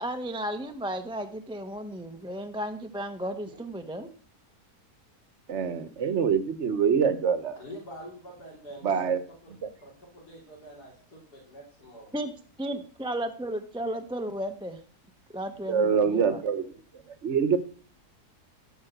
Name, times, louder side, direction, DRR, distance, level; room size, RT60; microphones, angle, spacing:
voice 1, 0.0-4.1 12.1-12.3 12.6-14.8 15.3-16.4, right 1 dB, 5° right, 7 dB, 0.7 m, -34 dB
voice 2, 5.5-7.6 8.8-9.2 9.6-9.7 15.7-16.7 17.2-17.6, right 6 dB, 50° right, 12 dB, 1.3 m, -25 dB
voice 3, 7.6-9.5 9.8-12.2, equal, 85° left, -2 dB, 3.9 m, -46 dB
13.5 x 5.6 x 8.0 m, 0.43 s
omnidirectional pair, 1.7 m